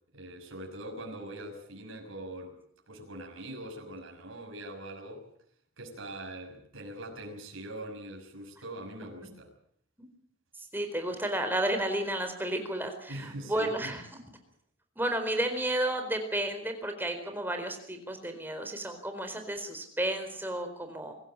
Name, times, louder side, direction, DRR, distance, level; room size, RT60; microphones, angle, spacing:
voice 1, 0.1-2.5 2.9-5.3 5.8-9.5 13.1-13.9, right 1 dB, 85° right, 3 dB, 6.0 m, -42 dB
voice 2, 10.7-14.0 15.0-21.1, right 1 dB, 10° right, 6 dB, 4.3 m, -32 dB
24.5 x 15.5 x 8.9 m, 0.65 s
head